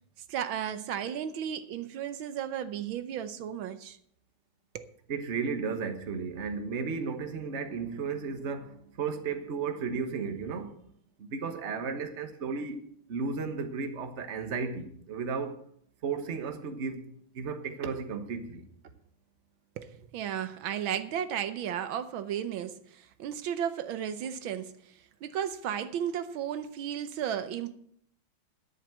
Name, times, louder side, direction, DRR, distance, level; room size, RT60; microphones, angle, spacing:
voice 1, 0.3-4.0 4.7-4.9 19.8-27.7, right 9 dB, 75° right, 1.6 m, -34 dB
voice 2, 5.1-10.7 11.2-15.6 16.0-17.1 17.3-18.7, right 5 dB, 40° right, 1.3 m, -34 dB
10.5 x 8.1 x 7.7 m
omnidirectional pair, 2.2 m